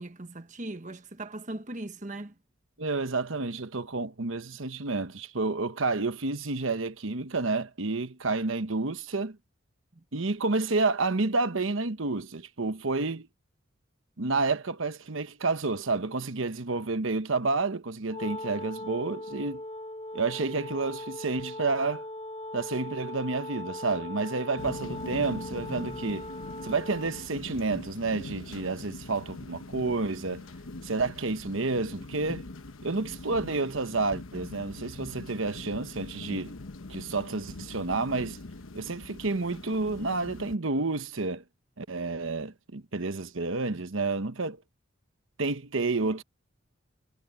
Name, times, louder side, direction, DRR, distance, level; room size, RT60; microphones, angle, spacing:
voice 1, 0.0-2.3 9.9-10.0, right 2 dB, 40° right, 1.3 m, -39 dB
voice 2, 2.8-9.4 10.1-13.3 14.2-19.6 20.1-22.0 22.5-26.3 26.6-30.4 30.8-32.5 32.8-36.6 36.9-38.4 38.7-41.4 41.8-44.6 45.4-46.2, right 3 dB, 75° right, 1.1 m, -30 dB
Wind instrument woodwind instrument, 18.1-27.3, left 1 dB, 30° left, 1.0 m, -40 dB
sound 1, 24.6-40.6, left 2 dB, 80° left, 1.1 m, -42 dB
head